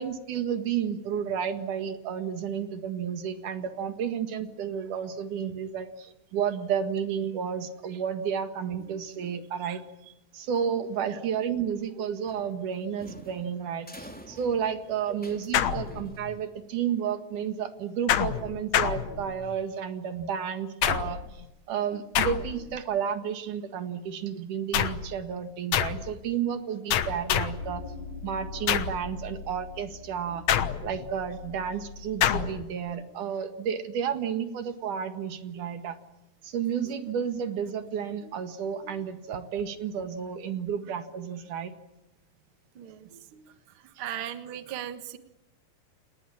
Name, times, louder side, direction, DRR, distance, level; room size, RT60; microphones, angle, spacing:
voice 1, 0.0-9.8 10.3-21.4 21.7-27.9 28.2-30.5 30.8-36.0 36.4-41.7 43.1-43.4, right 8 dB, 55° right, 9 dB, 2.9 m, -31 dB
sound 1, 12.2-16.7, equal, 5° left, 1.7 m, -49 dB
sound 2, 15.5-16.4 18.1-19.6 20.8-21.4 22.1-22.8 24.7-25.1 25.7-26.1 26.9-27.7 28.7-29.1 30.5-31.1 32.2-32.6, left 10 dB, 75° left, 1.6 m, -27 dB
sound 3, 27.6-32.7, left 4 dB, 50° left, 4.5 m, -42 dB
voice 2, 42.7-43.1 44.0-45.2, right 11 dB, 85° right, 10 dB, 1.1 m, -37 dB
29.5 x 20.0 x 8.8 m, 0.96 s
omnidirectional pair, 4.9 m